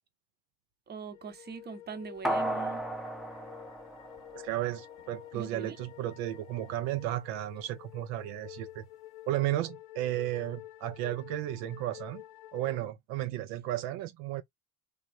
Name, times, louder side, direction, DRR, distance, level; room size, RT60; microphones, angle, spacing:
voice 1, 0.9-2.9 5.3-5.8, right 5 dB, 30° right, 0.9 m, -42 dB
sound 1, 1.1-12.8, left 15 dB, 65° left, 0.6 m, -50 dB
sound 2, 2.2-4.8 5.2-5.3, right 1 dB, ahead, 0.6 m, -34 dB
voice 2, 4.3-8.8 9.3-12.2 12.5-14.4, right 14 dB, 75° right, 0.5 m, -34 dB
3.4 x 2.0 x 2.5 m
hypercardioid pair, 80°, 31 cm